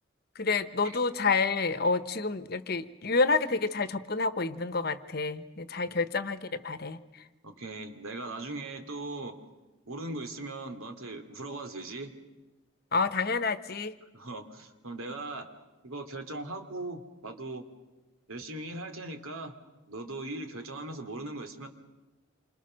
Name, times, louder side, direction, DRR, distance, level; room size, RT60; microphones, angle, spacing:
voice 1, 0.4-7.0 12.9-13.9, left 4 dB, 50° left, 12 dB, 1.0 m, -29 dB
voice 2, 7.4-9.4 9.9-12.1 14.1-15.5 15.8-17.6 18.3-19.5 19.9-21.7, right 2 dB, 85° right, 7 dB, 2.7 m, -39 dB
28.0 x 26.0 x 6.4 m, 1.1 s
head